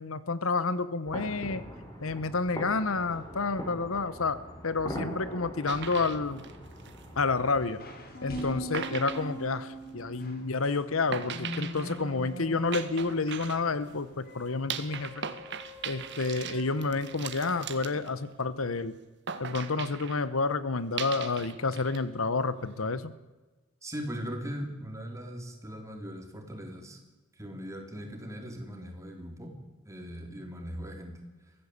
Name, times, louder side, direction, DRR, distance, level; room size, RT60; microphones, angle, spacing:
voice 1, 0.0-1.6 2.0-4.4 4.6-6.4 7.2-7.8 8.2-15.2 15.9-18.9 19.4-23.1, left 3 dB, 75° left, 15 dB, 1.0 m, -29 dB
sound 1, 1.0-7.7, equal, 20° left, 4.7 m, -41 dB
sound 2, 5.7-7.4 8.4-8.5 8.7-10.1 11.1-14.0 14.7-18.6 19.3-20.2 21.0-22.0 22.3-22.9, right 7 dB, 55° right, 1.7 m, -39 dB
sound 3, 7.6-17.9, equal, 45° left, 4.0 m, -43 dB
voice 2, 23.8-27.0 27.4-29.5 29.9-31.2, equal, 15° right, 2 dB, 4.0 m, -39 dB
23.5 x 16.0 x 8.2 m, 1.2 s
head